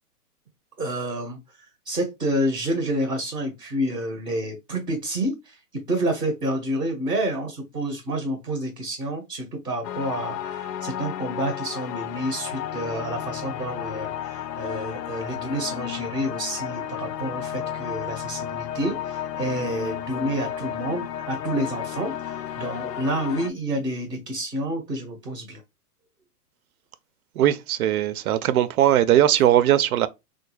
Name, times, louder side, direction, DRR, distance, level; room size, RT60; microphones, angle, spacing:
voice 1, 0.8-1.4 1.8-5.6 5.9-25.6, right 1 dB, 5° left, 0.4 m, -29 dB
sound 1, 9.8-23.5, left 10 dB, 85° left, 0.5 m, -33 dB
voice 2, 27.4-30.1, right 12 dB, 65° right, 0.5 m, -19 dB
3.3 x 2.2 x 3.1 m
hypercardioid pair, 145°, 47 cm